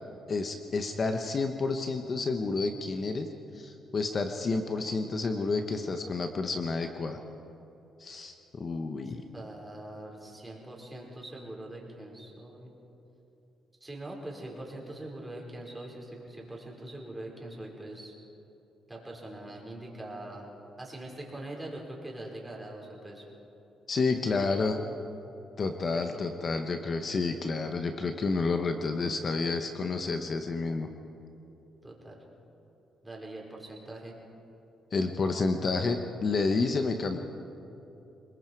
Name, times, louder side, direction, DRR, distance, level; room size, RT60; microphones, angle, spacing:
voice 1, 0.3-3.3 3.5-7.2 8.0-9.2 23.9-24.8 25.6-30.9 34.9-37.2, left 3 dB, 40° left, 6 dB, 1.2 m, -30 dB
voice 2, 9.3-12.7 13.8-18.1 18.9-20.5 20.8-23.2 24.2-24.7 25.9-26.2 31.8-32.2 33.0-34.1, right 1 dB, 15° right, -1 dB, 5.1 m, -43 dB
27.0 x 20.5 x 4.7 m, 2.9 s
cardioid pair, 90°, 0 cm